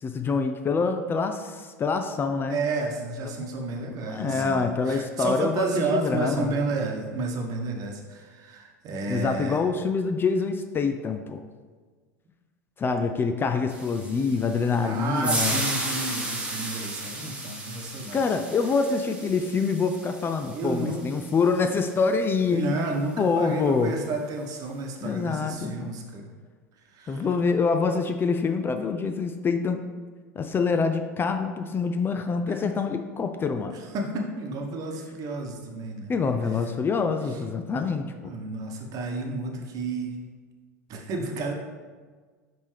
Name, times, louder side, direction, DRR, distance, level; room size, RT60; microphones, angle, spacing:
voice 1, 0.0-2.6 3.4-3.5 4.0-6.5 9.1-11.4 12.8-15.6 18.1-22.8 23.2-23.9 25.0-25.9 27.1-29.9 30.4-33.7 36.1-38.3, left 4 dB, 25° left, 6 dB, 0.4 m, -26 dB
voice 2, 2.5-9.6 14.8-18.2 20.5-21.1 22.5-26.3 26.9-27.3 32.5-32.6 33.9-36.1 37.9-38.0 38.2-40.2 40.9-41.5, right 3 dB, 45° right, 2 dB, 1.1 m, -31 dB
sound 1, 13.7-22.0, right 2 dB, 15° right, 1.2 m, -34 dB
5.9 x 5.3 x 3.3 m, 1.5 s
hypercardioid pair, 80°, 9 cm